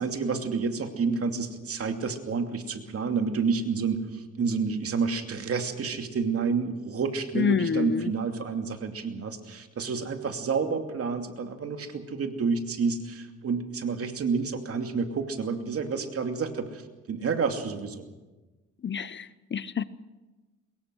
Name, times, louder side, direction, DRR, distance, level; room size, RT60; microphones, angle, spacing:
voice 1, 0.0-16.8 17.1-18.0, right 5 dB, 50° right, 5 dB, 2.6 m, -29 dB
voice 2, 7.3-8.1 18.8-19.8, left 6 dB, 40° left, 16 dB, 0.8 m, -27 dB
23.5 x 21.5 x 6.3 m, 1.2 s
cardioid pair, 90°, 30 cm